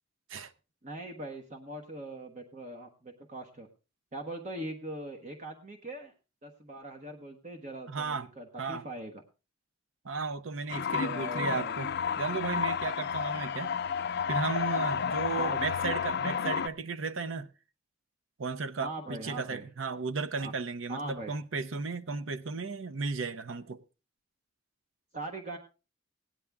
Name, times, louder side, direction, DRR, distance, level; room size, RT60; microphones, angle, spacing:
voice 1, 0.8-3.7 4.1-6.1 6.4-9.2 10.9-11.8 15.4-15.6 18.8-19.7 20.4-20.5 20.9-21.3 25.1-25.6, right 1 dB, 40° right, 1.3 m, -41 dB
voice 2, 7.9-8.3 8.6-8.8 10.0-11.9 12.2-13.7 14.3-17.5 18.4-23.8, right 4 dB, 85° right, 0.7 m, -35 dB
sound 1, 10.7-16.7, left 7 dB, 60° left, 0.5 m, -31 dB
17.0 x 9.8 x 3.5 m
head